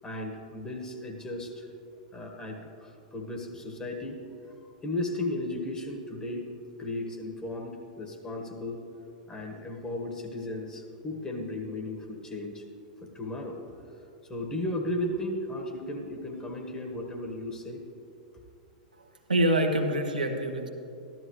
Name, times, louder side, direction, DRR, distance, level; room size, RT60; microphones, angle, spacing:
voice 1, 0.0-1.7 2.1-4.2 4.8-6.4 6.8-8.8 9.3-12.6 13.1-13.6 14.3-17.8, left 1 dB, 15° left, 1 dB, 1.6 m, -35 dB
voice 2, 19.0-20.7, right 1 dB, 90° right, 3 dB, 1.0 m, -26 dB
14.0 x 12.0 x 3.2 m, 2.7 s
figure-of-eight pair, 100°, 4 cm